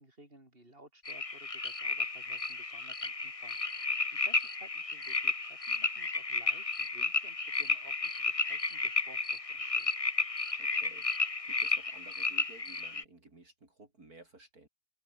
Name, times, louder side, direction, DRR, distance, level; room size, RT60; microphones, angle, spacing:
voice 1, 0.0-9.9, right 1 dB, 30° right, 7.6 m, -57 dB
sound 1, 1.1-13.0, left 3 dB, 20° left, 1.4 m, -33 dB
voice 2, 10.6-11.1 11.4-14.7, right 2 dB, 55° right, 5.4 m, -55 dB
omnidirectional pair, 1.8 m